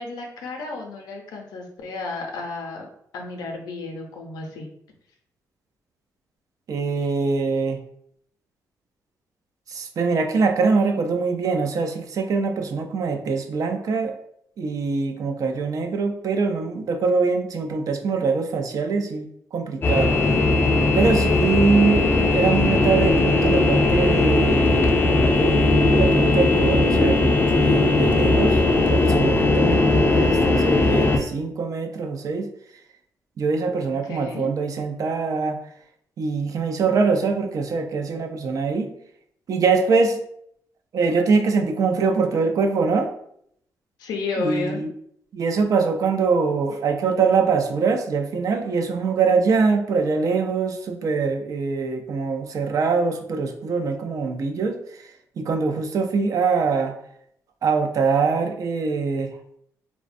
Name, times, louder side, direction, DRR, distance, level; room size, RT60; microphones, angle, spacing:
voice 1, 0.0-2.9 3.1-4.7 33.8-34.5 44.0-44.8, left 3 dB, 85° left, 2 dB, 0.5 m, -32 dB
voice 2, 6.7-7.8 9.7-14.2 14.6-20.2 21.0-24.9 25.3-28.6 28.9-32.5 33.4-35.6 36.2-38.9 39.5-40.2 40.9-43.1 44.4-44.9 45.3-55.1 55.4-56.9 57.6-59.3, right 4 dB, 55° right, 5 dB, 0.4 m, -23 dB
sound 1, 19.8-31.2, left 2 dB, 30° left, 0.3 m, -18 dB
2.5 x 2.1 x 2.5 m, 0.70 s
cardioid pair, 75°, 7 cm